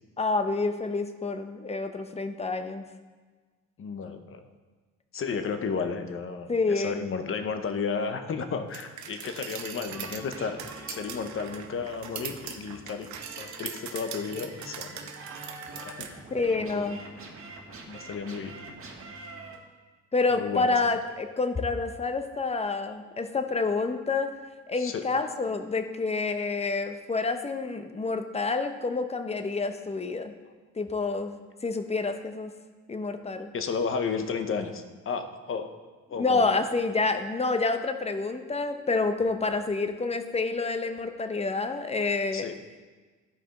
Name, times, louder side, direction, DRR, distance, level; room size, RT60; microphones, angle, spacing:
voice 1, 0.2-2.8 6.5-7.1 16.3-17.0 20.1-24.3 24.7-30.3 30.8-32.5 32.9-33.5 36.2-42.5, left 3 dB, 20° left, 8 dB, 0.7 m, -28 dB
voice 2, 3.8-4.4 5.1-13.1 13.4-15.0 15.7-16.2 16.6-16.9 17.9-18.5 20.3-20.7 24.8-25.0 33.5-35.7 36.1-36.5 39.5-39.6 42.3-42.5, left 5 dB, 45° left, 8 dB, 0.9 m, -33 dB
sound 1, 8.7-16.1, right 8 dB, 70° right, 0.8 m, -41 dB
sound 2, 9.9-19.5, right 3 dB, 45° right, 1.5 m, -45 dB
12.5 x 4.9 x 3.8 m, 1.4 s
cardioid pair, 90°, 30 cm